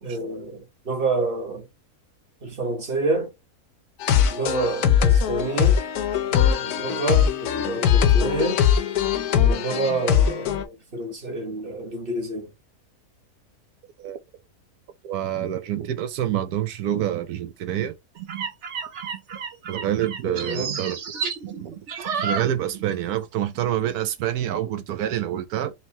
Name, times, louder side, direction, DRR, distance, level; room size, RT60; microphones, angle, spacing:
voice 1, 0.0-1.7 2.4-3.3 4.2-5.8 6.3-8.6 9.4-12.5 20.2-20.8, right 2 dB, 40° right, 1.4 m, -28 dB
crystal party, 4.0-10.6, left 8 dB, 80° left, 1.2 m, -21 dB
voice 2, 15.0-18.0 19.7-21.0 21.6-21.7 22.2-25.7, right 11 dB, 75° right, 1.2 m, -27 dB
sound 1, 18.2-23.1 23.4-23.6, right 6 dB, 55° right, 1.0 m, -31 dB
4.6 x 2.9 x 2.9 m
omnidirectional pair, 1.6 m